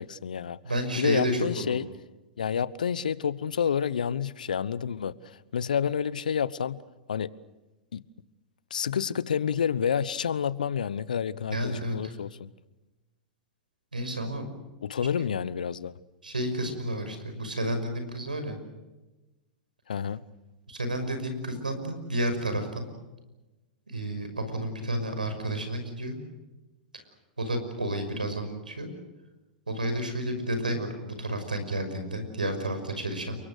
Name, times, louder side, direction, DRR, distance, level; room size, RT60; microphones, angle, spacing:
voice 1, 0.0-0.6 1.0-1.9 2.4-6.8 7.1-7.3 7.9-8.0 8.7-12.5 14.8-15.9 19.9-20.2, left 7 dB, 75° left, 1.0 m, -29 dB
voice 2, 0.6-1.8 11.5-12.1 13.9-14.4 16.2-18.6 20.7-22.9 23.9-26.2 27.4-28.9 29.7-33.4, right 1 dB, 90° right, 5.9 m, -31 dB
29.5 x 24.0 x 6.6 m
hypercardioid pair, 100°, 4 cm